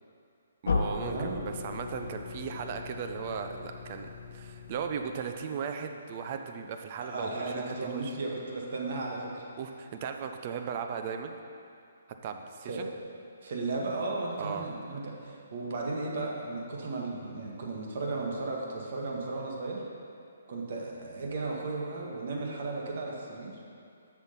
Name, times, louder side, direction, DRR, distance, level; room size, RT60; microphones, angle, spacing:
sound 1, 0.6-5.5, left 4 dB, 70° left, 0.9 m, -36 dB
voice 1, 0.6-8.1 9.6-11.4 12.2-12.9 14.4-14.6, right 6 dB, 35° right, 6 dB, 0.6 m, -37 dB
voice 2, 7.0-9.4 12.7-12.9 13.4-19.8 20.5-23.6, right 3 dB, 55° right, -2 dB, 1.6 m, -35 dB
7.3 x 6.3 x 5.7 m, 2.5 s
hypercardioid pair, 160°, 0 cm